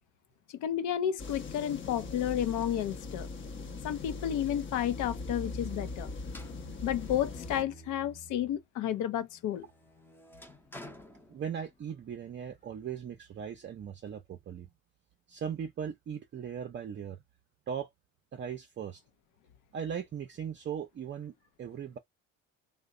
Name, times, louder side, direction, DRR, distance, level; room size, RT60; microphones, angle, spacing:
voice 1, 0.5-3.3 3.8-6.1 6.8-9.7, left 10 dB, 70° left, 0.7 m, -31 dB
sound 1, 1.2-7.6, left 3 dB, 40° left, 0.8 m, -40 dB
sound 2, 6.3-8.7 9.1-12.0, left 1 dB, 5° left, 0.7 m, -52 dB
voice 2, 11.3-14.7 15.3-17.2 17.7-17.9 18.3-19.0 19.7-22.0, right 8 dB, 35° right, 0.6 m, -38 dB
2.7 x 2.2 x 3.7 m
cardioid pair, 100°, 32 cm